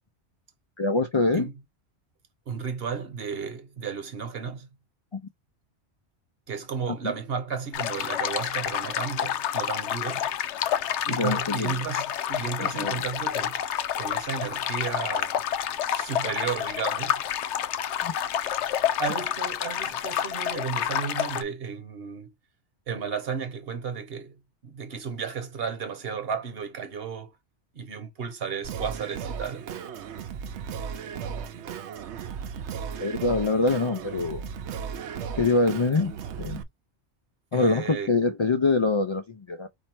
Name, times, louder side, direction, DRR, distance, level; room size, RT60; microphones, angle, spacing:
voice 1, 0.8-1.5 5.1-5.2 6.9-7.0 11.1-11.7 12.6-13.0 18.0-18.1 33.0-34.4 35.4-36.6 37.5-39.7, left 3 dB, 50° left, 0.3 m, -25 dB
voice 2, 2.5-4.7 6.5-10.5 11.0-13.6 14.0-15.4 15.9-17.2 19.0-22.3 22.9-24.4 24.6-27.3 27.7-29.6 37.5-38.1, right 6 dB, 60° right, 1.2 m, -33 dB
sound 1, 7.7-21.4, left 10 dB, 90° left, 0.9 m, -29 dB
Singing, 28.6-36.6, right 7 dB, 80° right, 0.9 m, -36 dB
4.4 x 2.7 x 4.4 m
omnidirectional pair, 1.2 m